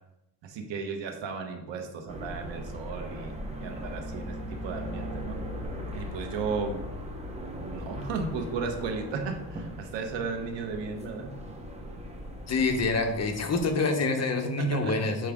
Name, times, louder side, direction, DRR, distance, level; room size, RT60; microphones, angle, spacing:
voice 1, 0.4-5.4 5.9-6.8 7.6-11.4 14.6-15.0, right 4 dB, 85° right, 4 dB, 1.2 m, -35 dB
sound 1, 2.1-13.7, equal, 15° right, 1.0 m, -39 dB
voice 2, 12.5-15.3, left 3 dB, 35° left, 4 dB, 1.0 m, -26 dB
7.5 x 4.7 x 3.6 m, 0.86 s
cardioid pair, 125°, 43 cm